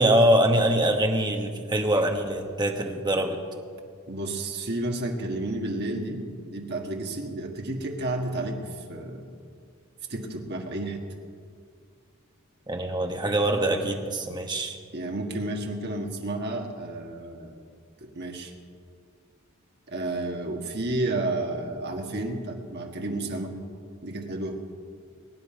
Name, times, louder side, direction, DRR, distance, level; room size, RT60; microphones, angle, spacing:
voice 1, 0.0-3.4 12.7-14.8, right 1 dB, 20° right, 3 dB, 1.2 m, -23 dB
voice 2, 4.1-8.6 8.9-9.2 10.1-11.0 14.9-17.7 18.0-18.5 19.9-23.5 24.0-24.6, right 2 dB, 50° right, 2 dB, 1.7 m, -31 dB
22.5 x 9.3 x 5.1 m, 2.2 s
head